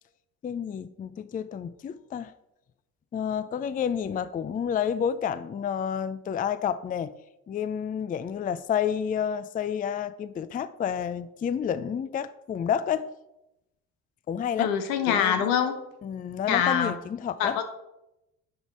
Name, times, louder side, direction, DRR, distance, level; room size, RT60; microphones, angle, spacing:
voice 1, 0.4-2.3 3.1-7.1 7.5-13.1 14.3-14.7 15.1-15.4 16.0-17.6, left 8 dB, 20° left, 0.4 m, -30 dB
voice 2, 14.6-15.8 16.5-16.9 17.4-17.7, left 8 dB, 80° left, 1.1 m, -24 dB
9.6 x 3.5 x 5.4 m
hypercardioid pair, 60°, 43 cm